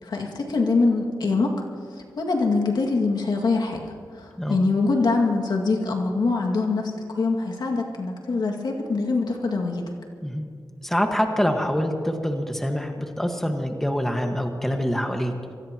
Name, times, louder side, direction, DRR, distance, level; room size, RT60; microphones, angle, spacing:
voice 1, 0.0-1.5 2.0-3.8 4.1-9.8, left 3 dB, 70° left, 1 dB, 2.2 m, -24 dB
voice 2, 10.8-15.5, equal, 5° left, 3 dB, 1.6 m, -25 dB
25.0 x 18.5 x 3.0 m, 2.1 s
cardioid pair, 65°, 7 cm